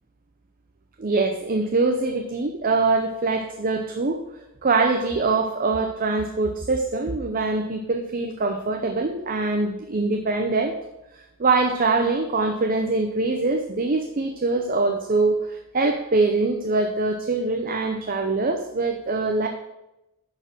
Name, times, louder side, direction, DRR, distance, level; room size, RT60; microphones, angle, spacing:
voice 1, 1.0-4.2 4.6-10.8 11.4-19.5, right 3 dB, 40° right, 5 dB, 0.6 m, -23 dB
10.5 x 4.4 x 6.2 m, 0.92 s
head